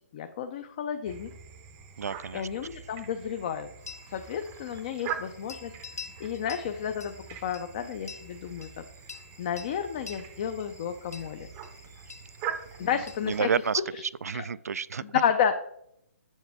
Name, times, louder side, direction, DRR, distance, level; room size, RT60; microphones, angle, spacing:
voice 1, 0.1-1.3 2.3-3.7 4.1-7.2 7.4-8.7 9.4-11.5 12.8-13.5 14.3-14.4 15.0-15.5, left 8 dB, 30° left, 7 dB, 0.4 m, -31 dB
sound 1, 1.0-13.4, right 8 dB, 20° right, 0.6 m, -43 dB
voice 2, 2.0-2.5 12.8-12.9 13.2-13.8 14.2-15.2, right 6 dB, 85° right, 19 dB, 0.3 m, -30 dB
sound 2, 3.8-13.8, left 5 dB, 90° left, 0.9 m, -48 dB
7.8 x 7.2 x 3.4 m, 0.74 s
hypercardioid pair, 160°, 8 cm